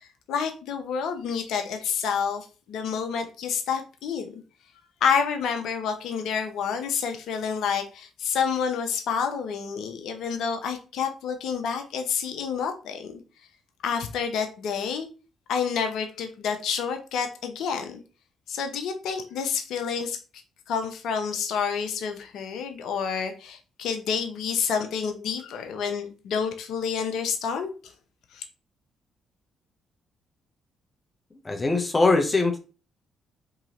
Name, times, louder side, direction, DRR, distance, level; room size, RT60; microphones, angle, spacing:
voice 1, 0.3-4.4 5.0-13.2 13.8-15.1 15.5-18.0 18.5-20.2 20.7-27.7 28.3-28.4, left 6 dB, 75° left, 6 dB, 0.6 m, -29 dB
voice 2, 31.4-32.6, left 3 dB, 25° left, 3 dB, 0.8 m, -22 dB
3.7 x 2.8 x 2.8 m, 0.34 s
supercardioid pair, 60°, 0 cm